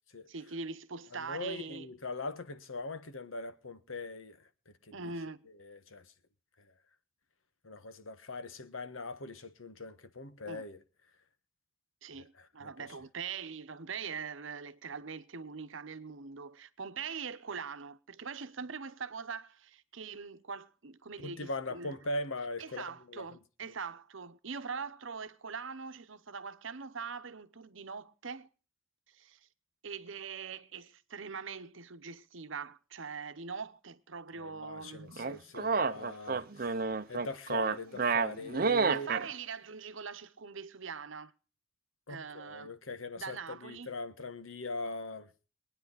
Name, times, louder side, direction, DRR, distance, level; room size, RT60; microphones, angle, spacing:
voice 1, 0.3-1.9 4.9-5.4 10.5-10.6 12.0-21.9 22.6-28.5 29.1-29.4 29.8-35.5 38.9-41.3 42.1-42.7 43.2-43.9, right 5 dB, 75° right, 0.9 m, -42 dB
voice 2, 1.1-5.1 5.6-6.0 7.6-10.8 12.4-12.9 21.2-23.4 34.3-36.8 37.1-39.1 42.1-45.3, left 2 dB, 85° left, 1.4 m, -41 dB
sound 1, 35.2-39.3, right 4 dB, 45° right, 0.7 m, -30 dB
23.0 x 9.6 x 4.0 m
head